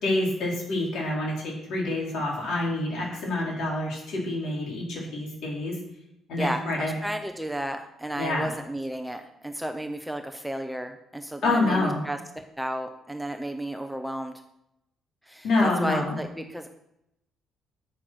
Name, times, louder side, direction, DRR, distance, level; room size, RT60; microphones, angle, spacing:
voice 1, 0.0-5.8 6.3-6.9 8.2-8.5 11.4-12.0 15.4-16.2, left 2 dB, 60° left, -3 dB, 4.9 m, -27 dB
voice 2, 6.4-14.3 15.3-16.7, right 1 dB, ahead, 5 dB, 0.7 m, -33 dB
9.0 x 8.9 x 6.3 m, 0.84 s
cardioid pair, 160°, 0 cm